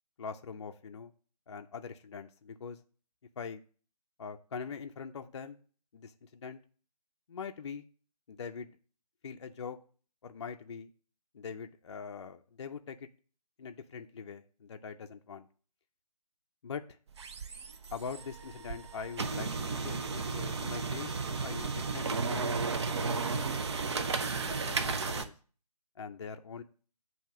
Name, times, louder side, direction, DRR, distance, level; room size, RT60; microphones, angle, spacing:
voice 1, 0.2-1.1 1.5-2.8 3.4-3.6 4.2-5.6 5.9-6.6 7.3-7.9 8.3-8.7 9.2-9.8 10.2-10.9 11.3-13.1 13.6-15.5 16.6-16.8 17.9-23.6 24.2-25.3 26.0-26.6, left 6 dB, 45° left, 5 dB, 0.5 m, -43 dB
sound 1, 17.1-25.2, right 4 dB, 45° right, 0.6 m, -34 dB
7.4 x 2.8 x 6.0 m, 0.41 s
figure-of-eight pair, 155°, 21 cm